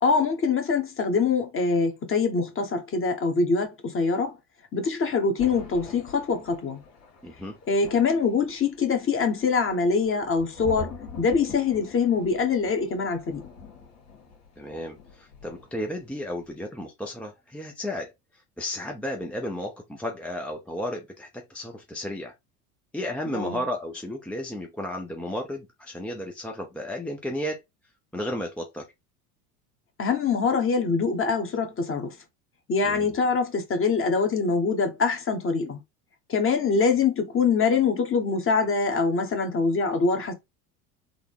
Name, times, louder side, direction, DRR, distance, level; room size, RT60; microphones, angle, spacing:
voice 1, 0.0-4.3 4.7-6.8 7.7-13.4 23.3-23.6 30.0-32.1 32.7-35.8 36.3-40.3, left 5 dB, 25° left, 1.1 m, -24 dB
Thunder, 5.4-16.0 16.3-16.6, left 3 dB, 85° left, 1.5 m, -44 dB
voice 2, 7.2-7.5 14.6-18.1 18.6-22.3 22.9-27.6 28.1-28.9 32.8-33.1, left 1 dB, 5° left, 0.5 m, -33 dB
3.8 x 2.1 x 3.5 m
hypercardioid pair, 80°, 46 cm